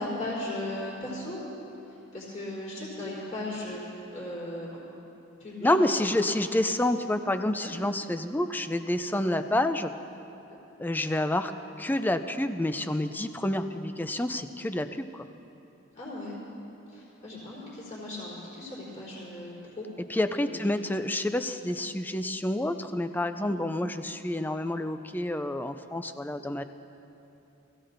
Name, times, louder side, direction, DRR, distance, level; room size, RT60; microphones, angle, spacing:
voice 1, 0.0-1.4 1.8-3.8 4.1-4.8 5.4-6.1 7.6-7.7 9.1-9.2 10.5-10.6 15.9-16.4 16.9-19.9 20.4-20.6 23.3-23.5, left 1 dB, 40° left, -8 dB, 3.9 m, -37 dB
voice 2, 5.6-9.9 10.8-11.5 11.8-15.3 20.1-26.6, left 1 dB, 10° left, 9 dB, 0.4 m, -28 dB
21.5 x 16.0 x 2.6 m, 2.9 s
head